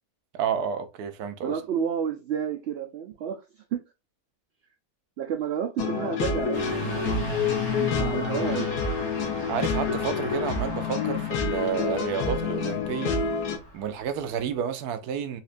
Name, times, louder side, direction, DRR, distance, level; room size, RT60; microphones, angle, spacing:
voice 1, 0.3-1.6 9.5-13.2 13.7-15.4, right 7 dB, 85° right, 1.1 m, -30 dB
voice 2, 1.4-3.8 5.2-7.3 7.8-8.7, right 8 dB, 70° right, 0.6 m, -31 dB
sound 1, 5.8-13.6, left 5 dB, 90° left, 1.3 m, -28 dB
Truck / Accelerating revving vroom, 6.5-14.5, equal, 55° left, 1.2 m, -38 dB
4.1 x 2.5 x 2.5 m
omnidirectional pair, 1.6 m